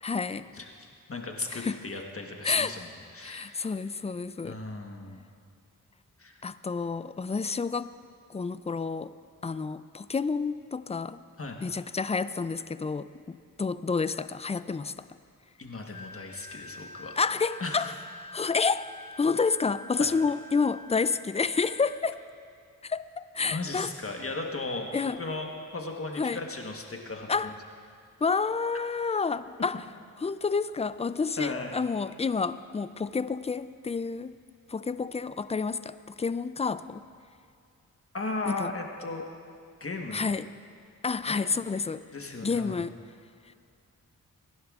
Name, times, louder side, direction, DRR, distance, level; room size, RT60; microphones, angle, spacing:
voice 1, 0.0-0.5 1.5-1.8 2.4-2.7 3.2-4.6 6.4-7.9 8.3-9.1 9.4-11.2 11.6-14.9 17.2-17.9 18.3-18.9 19.2-22.2 22.8-23.9 24.9-25.2 26.2-26.4 27.3-27.5 28.2-29.8 30.2-34.4 34.7-37.0 38.5-38.7 40.1-40.5 41.0-42.0 42.4-42.9, left 4 dB, 20° left, 14 dB, 0.3 m, -29 dB
voice 2, 0.5-3.5 4.4-5.2 6.2-6.4 11.4-11.6 15.6-17.1 17.6-18.0 20.0-20.1 23.5-24.9 25.2-27.5 31.4-31.7 38.1-39.3 39.8-40.3 41.3-41.4 42.1-42.7, left 3 dB, 40° left, 2 dB, 1.3 m, -36 dB
Wind instrument woodwind instrument, 15.9-22.1, left 2 dB, 65° left, 0.9 m, -46 dB
20.0 x 11.0 x 2.4 m, 2.3 s
cardioid pair, 55°, 34 cm